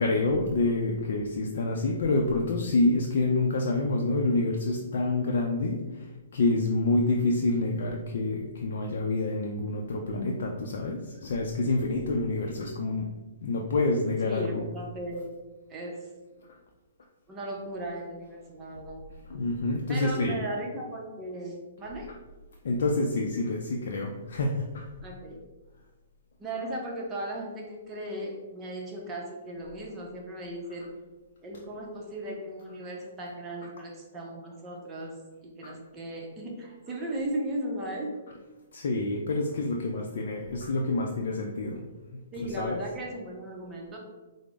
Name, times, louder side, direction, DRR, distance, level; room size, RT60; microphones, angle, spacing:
voice 1, 0.0-13.1 13.4-14.6 19.3-20.5 22.6-24.9 35.6-35.7 38.7-41.8 42.1-42.8, left 2 dB, 70° left, 1 dB, 0.4 m, -27 dB
voice 2, 14.2-15.3 15.7-16.1 17.3-19.1 19.9-22.1 25.0-25.4 26.4-30.9 31.4-35.1 35.4-38.2 42.3-44.0, right 1 dB, 15° right, -2 dB, 0.6 m, -36 dB
4.9 x 2.0 x 3.4 m, 1.2 s
hypercardioid pair, 150°, 0 cm